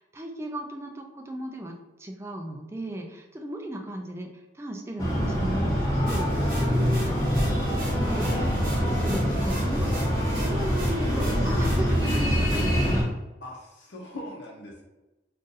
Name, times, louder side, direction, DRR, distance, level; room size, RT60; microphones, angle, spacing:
voice 1, 0.0-4.3 4.5-9.9 10.3-13.1, right 1 dB, 15° right, 2 dB, 0.4 m, -36 dB
Breathing, 5.0-13.0, equal, 20° left, 0.7 m, -25 dB
sound 1, 6.1-12.9, equal, 50° right, 0.9 m, -40 dB
voice 2, 6.5-7.1 13.4-14.8, left 1 dB, 65° left, -3 dB, 0.7 m, -42 dB
2.6 x 2.5 x 3.9 m, 1.1 s
head